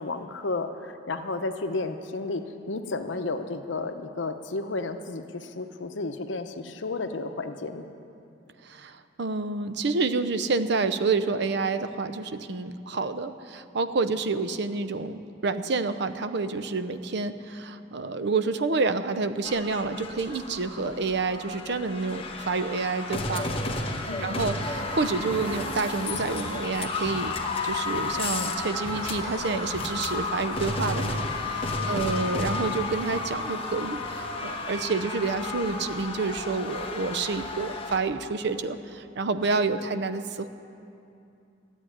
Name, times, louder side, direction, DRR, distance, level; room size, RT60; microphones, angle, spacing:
voice 1, 0.0-7.9 24.1-24.3 31.8-32.1, left 3 dB, 75° left, 8 dB, 0.8 m, -32 dB
voice 2, 8.6-23.5 24.2-27.3 27.6-31.2 31.4-40.5, right 3 dB, 65° right, 11 dB, 0.6 m, -28 dB
sound 1, 19.4-38.0, left 3 dB, 30° left, 1.2 m, -32 dB
13.5 x 8.2 x 10.0 m, 2.6 s
head